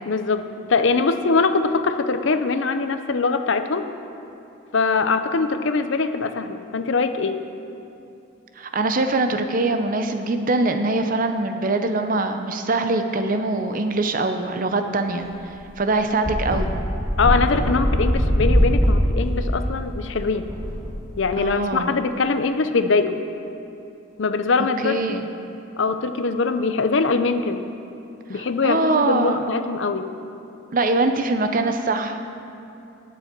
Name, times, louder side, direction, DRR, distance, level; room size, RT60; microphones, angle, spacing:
voice 1, 0.1-3.8 4.7-7.4 17.2-20.5 21.2-23.2 24.2-25.2 25.8-27.6 28.3-30.1, left 4 dB, 60° left, 9 dB, 0.6 m, -22 dB
voice 2, 8.6-15.3 15.8-16.8 21.4-21.9 24.8-25.3 28.3-29.4 30.7-32.2, right 2 dB, 40° right, 7 dB, 0.6 m, -23 dB
sound 1, 15.2-15.3 15.6-15.7 16.2-21.4, equal, 10° right, 2.4 m, -22 dB
18.0 x 7.1 x 4.5 m, 2.8 s
head